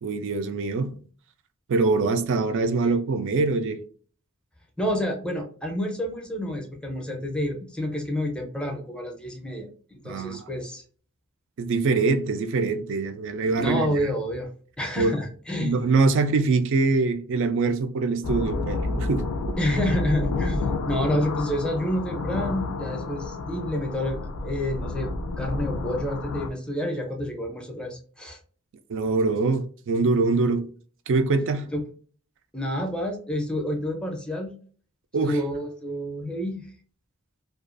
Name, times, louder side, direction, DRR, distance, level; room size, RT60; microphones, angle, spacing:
voice 1, 0.0-0.9 1.7-3.8 10.0-10.5 11.6-14.1 15.0-15.1 15.6-19.2 28.9-30.7 31.1-31.7 35.1-35.4, right 3 dB, 60° right, 0.4 m, -24 dB
voice 2, 4.8-10.8 13.6-14.5 14.8-15.8 19.6-28.4 31.7-31.8 32.5-34.5 35.2-36.7, left 1 dB, 5° left, 0.5 m, -29 dB
sound 1, 18.2-26.5, left 3 dB, 70° left, 0.3 m, -30 dB
2.4 x 2.3 x 2.5 m
head